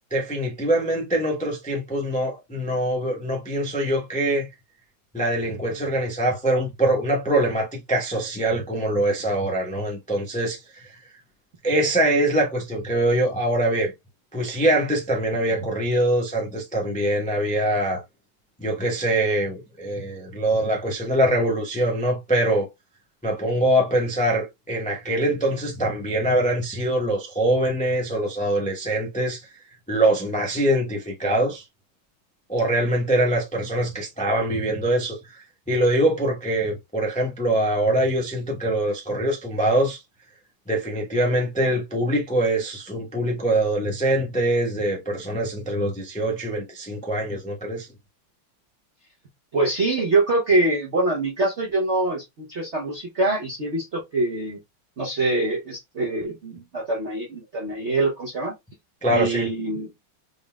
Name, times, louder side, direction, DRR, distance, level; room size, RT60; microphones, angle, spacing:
voice 1, 0.1-4.5 5.1-10.9 11.6-13.9 14.3-18.0 18.6-22.7 23.2-29.4 29.9-31.6 32.5-40.0 40.7-47.9 59.0-59.5, right 1 dB, 10° left, 0.3 m, -23 dB
voice 2, 49.5-54.6 55.0-58.5 59.1-59.9, right 2 dB, 60° right, 0.7 m, -24 dB
3.8 x 3.7 x 2.3 m
omnidirectional pair, 2.3 m